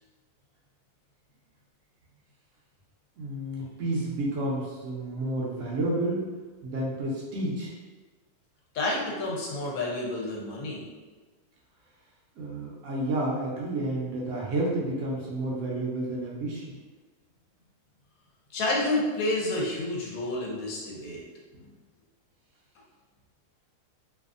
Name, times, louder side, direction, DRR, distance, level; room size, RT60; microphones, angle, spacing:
voice 1, 3.2-6.3 6.6-7.7 12.4-16.8 21.5-21.6, right 1 dB, 65° right, -4 dB, 0.8 m, -30 dB
voice 2, 8.7-10.9 18.5-21.2, left 2 dB, 70° left, -3 dB, 1.1 m, -29 dB
2.7 x 2.3 x 2.4 m, 1.3 s
omnidirectional pair, 1.7 m